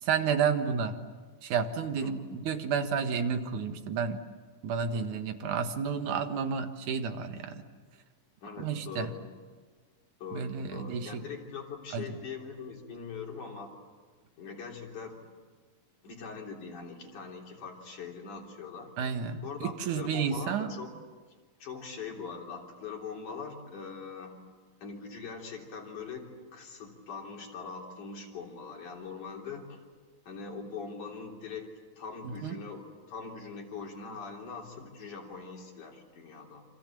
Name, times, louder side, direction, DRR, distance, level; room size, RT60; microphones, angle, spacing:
voice 1, 0.0-1.0 1.4-4.2 4.6-7.6 8.6-9.1 10.3-11.3 11.9-12.0 19.0-20.7 32.2-32.5, right 6 dB, 80° right, 7 dB, 3.0 m, -31 dB
voice 2, 2.0-2.4 4.9-5.3 8.4-9.3 10.2-13.7 14.4-15.3 16.0-18.9 19.4-20.9 21.3-24.4 24.8-29.8 30.2-36.7, left 5 dB, 85° left, 0 dB, 5.0 m, -42 dB
28.0 x 26.5 x 7.6 m, 1.5 s
omnidirectional pair, 3.4 m